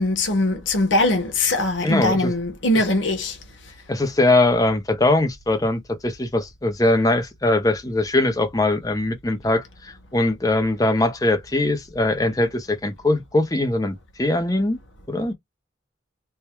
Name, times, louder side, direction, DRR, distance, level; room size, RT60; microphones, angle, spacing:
voice 1, 0.0-3.3, left 2 dB, 85° left, 1.1 m, -21 dB
voice 2, 1.8-2.3 3.9-14.8 15.1-15.3, left 2 dB, 20° left, 0.6 m, -21 dB
3.5 x 2.2 x 4.4 m
head